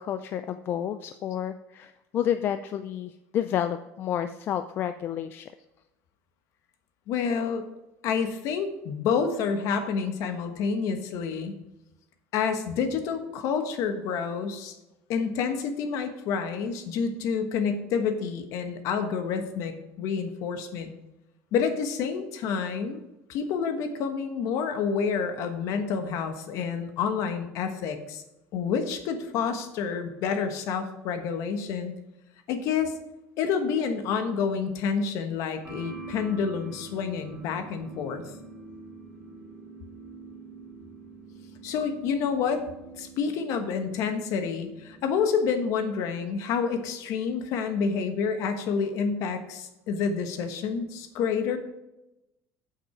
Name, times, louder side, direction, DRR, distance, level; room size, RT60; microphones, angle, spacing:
voice 1, 0.0-5.5, left 10 dB, 35° left, 10 dB, 0.4 m, -30 dB
voice 2, 7.1-7.7 8.0-11.5 12.3-14.7 15.1-20.9 21.5-23.0 23.3-28.2 28.5-31.9 32.5-33.0 33.4-38.2 41.6-42.6 43.0-51.6, left 6 dB, 55° left, 7 dB, 1.2 m, -28 dB
sound 1, 35.6-45.1, right 3 dB, 10° right, 2.3 m, -45 dB
8.8 x 7.3 x 5.0 m, 0.94 s
cardioid pair, 175°, 7 cm